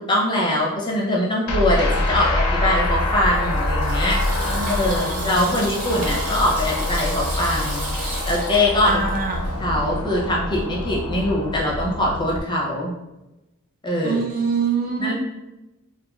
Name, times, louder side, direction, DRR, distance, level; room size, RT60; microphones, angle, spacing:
voice 1, 0.0-7.9 8.3-9.0 9.6-12.9 13.8-14.2 15.0-15.1, left 1 dB, 20° left, -3 dB, 0.5 m, -22 dB
sound 1, 1.5-12.4, left 1 dB, 75° left, 0.4 m, -25 dB
Water tap faucet / Sink (filling or washing), 2.8-9.5, right 1 dB, 75° right, 0.9 m, -34 dB
voice 2, 4.5-5.6 8.8-9.4 14.0-15.1, right 4 dB, 40° right, 1 dB, 0.3 m, -25 dB
2.9 x 2.6 x 2.3 m, 0.96 s
head